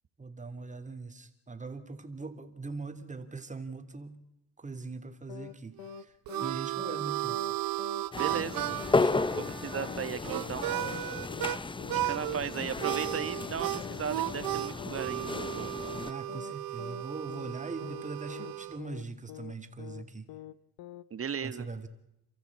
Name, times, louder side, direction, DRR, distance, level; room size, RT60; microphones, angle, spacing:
voice 1, 0.2-4.2 4.6-6.1 6.4-7.5 8.9-9.3 16.1-20.3 21.4-21.9, right 3 dB, 20° right, 8 dB, 3.0 m, -41 dB
sound 1, 5.3-5.5 5.8-6.0 6.3-6.5 6.8-7.0 7.3-7.5 7.8-8.0 8.3-8.5 8.8-9.0 9.3-9.5 9.8-10.0 10.3-10.5 10.8-11.0 11.3-11.5 11.8-12.0 12.3-12.5 12.8-13.0 13.3-13.5 13.8-14.0 14.3-14.5 14.8-15.0 15.3-15.5 15.8-16.0 16.3-16.5 16.8-17.0 17.3-17.5 17.8-18.0 18.3-18.5 18.8-19.0 19.3-19.5 19.8-20.0 20.3-20.5 20.8-21.0, left 16 dB, 70° left, 0.9 m, -45 dB
Harmonica, 5.8-11.6 11.9-12.4 12.8-18.8, right 16 dB, 70° right, 1.1 m, -35 dB
sound 2, 8.1-16.1, left 3 dB, 15° left, 0.8 m, -34 dB
voice 2, 8.1-8.7 9.6-10.7 11.9-15.7 21.1-21.7, right 7 dB, 40° right, 12 dB, 2.0 m, -36 dB
29.5 x 14.0 x 8.5 m, 0.84 s
supercardioid pair, 80°, 36 cm